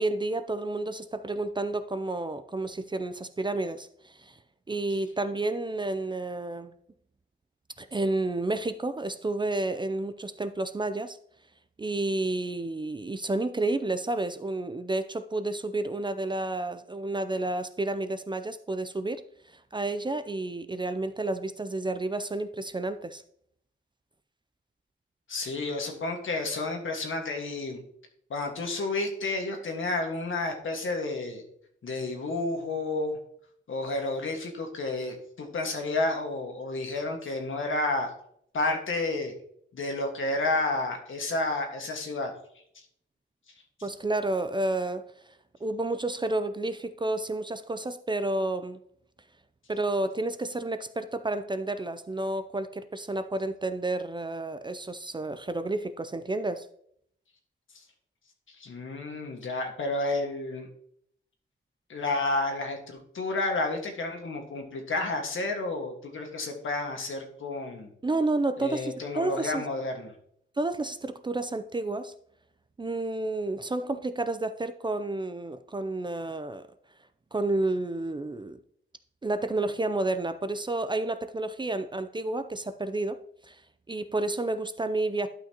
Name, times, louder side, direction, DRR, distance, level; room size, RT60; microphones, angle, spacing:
voice 1, 0.0-4.3 4.7-6.7 7.8-11.2 11.8-19.2 19.7-23.2 43.8-45.1 45.6-48.8 49.7-56.7 68.0-69.6 70.6-72.1 72.8-76.7 77.3-78.6 79.2-83.2 83.5-83.6 83.9-85.3, right 2 dB, 25° right, 0.4 m, -30 dB
voice 2, 25.3-27.8 28.3-31.4 31.8-33.2 33.7-38.1 38.5-39.3 39.7-42.3 58.6-60.7 61.9-67.9 68.6-70.1, left 2 dB, 75° left, 1.6 m, -31 dB
11.5 x 5.7 x 2.9 m
wide cardioid pair, 105°, 21 cm